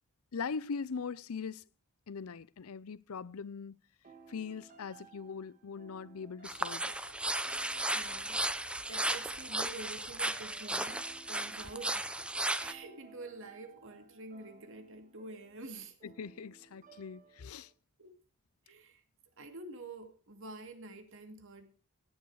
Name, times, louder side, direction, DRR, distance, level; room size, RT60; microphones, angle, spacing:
voice 1, 0.3-1.6 2.1-3.8 4.3-6.9 16.0-17.7, left 5 dB, 80° left, 0.6 m, -41 dB
sound 1, 4.0-17.7, right 5 dB, 35° right, 1.8 m, -58 dB
sound 2, 6.4-12.7, right 1 dB, 5° right, 0.7 m, -35 dB
voice 2, 7.9-15.9 18.0-18.2 18.7-19.0 19.4-21.7, right 3 dB, 65° right, 2.4 m, -48 dB
17.5 x 9.4 x 4.8 m
head